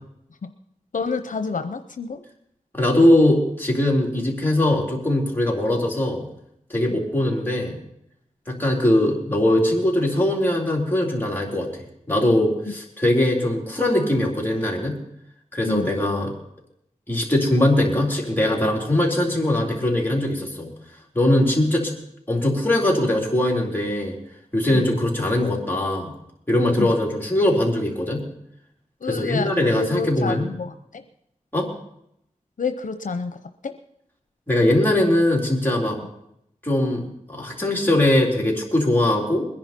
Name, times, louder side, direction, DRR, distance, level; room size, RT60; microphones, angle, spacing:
voice 1, 0.9-2.2 6.9-7.0 15.6-16.0 24.7-24.8 26.8-26.9 29.0-31.0 32.6-33.4 33.6-33.7, left 4 dB, 80° left, 8 dB, 0.8 m, -28 dB
voice 2, 2.7-6.2 6.7-7.8 8.5-14.9 15.5-16.3 17.1-20.7 21.1-21.9 22.3-24.1 24.5-26.1 26.5-28.2 29.1-30.5 31.5-31.7 34.5-36.0 36.6-39.5, left 1 dB, 15° left, -2 dB, 3.8 m, -21 dB
21.5 x 10.5 x 4.4 m, 0.78 s
wide cardioid pair, 80°, 13 cm